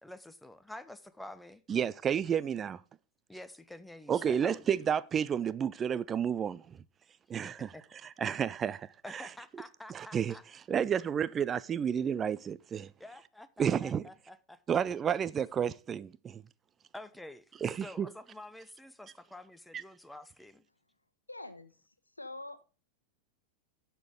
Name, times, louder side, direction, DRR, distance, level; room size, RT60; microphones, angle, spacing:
voice 1, 0.0-1.6 3.3-4.9 7.4-7.8 9.0-10.4 13.0-14.6 16.9-20.7, left 1 dB, 5° left, 0.8 m, -49 dB
voice 2, 1.7-2.8 4.1-6.8 7.3-7.7 8.2-9.2 9.9-10.4 10.7-12.9 13.6-14.0 14.7-16.4 17.6-18.1, right 8 dB, 25° right, 0.4 m, -31 dB
voice 3, 21.3-21.7 22.2-22.7, left 2 dB, 85° left, 1.1 m, -44 dB
11.5 x 6.9 x 3.7 m
figure-of-eight pair, 90°, 0 cm